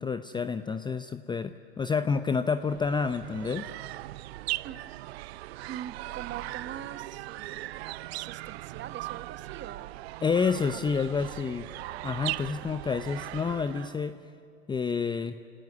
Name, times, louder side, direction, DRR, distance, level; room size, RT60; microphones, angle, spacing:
voice 1, 0.0-3.7 10.2-11.7 12.0-14.1 14.7-15.4, left 5 dB, 15° left, 10 dB, 0.6 m, -29 dB
sound 1, 2.6-14.1, right 18 dB, 70° right, 0.6 m, -39 dB
voice 2, 5.6-10.0 10.7-10.9, right 10 dB, 35° right, 11 dB, 1.3 m, -43 dB
28.0 x 18.0 x 9.5 m, 2.7 s
hypercardioid pair, 95°, 33 cm